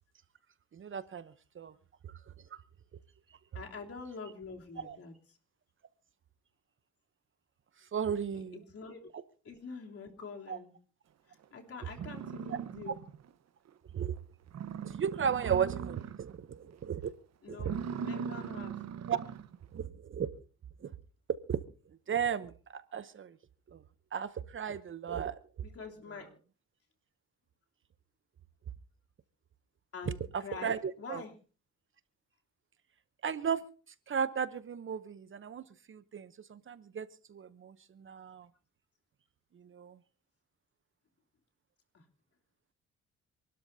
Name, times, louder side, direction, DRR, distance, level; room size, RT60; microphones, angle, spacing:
voice 1, 0.7-1.7 4.8-5.0 7.9-8.6 10.5-10.6 12.9-13.0 13.9-14.1 14.8-17.1 17.5-17.6 19.1-19.2 19.7-20.3 20.8-20.9 21.5-21.6 22.1-23.3 23.7-23.8 24.1-25.3 30.3-31.2 33.2-33.6 34.1-38.5 39.6-40.0, right 7 dB, 40° right, 14 dB, 0.8 m, -35 dB
voice 2, 3.5-5.2 8.3-9.0 9.4-10.7 11.3-13.0 17.4-18.8 25.6-26.3 29.9-31.3 41.9-42.0, left 4 dB, 50° left, 1 dB, 3.3 m, -46 dB
sound 1, 11.4-11.5 11.9-13.3 13.7-13.8 14.2-14.3 14.5-16.4 16.7-17.1 17.5-19.6, right 7 dB, 60° right, 1.1 m, -40 dB
27.0 x 12.5 x 2.7 m, 0.37 s
cardioid pair, 90°, 30 cm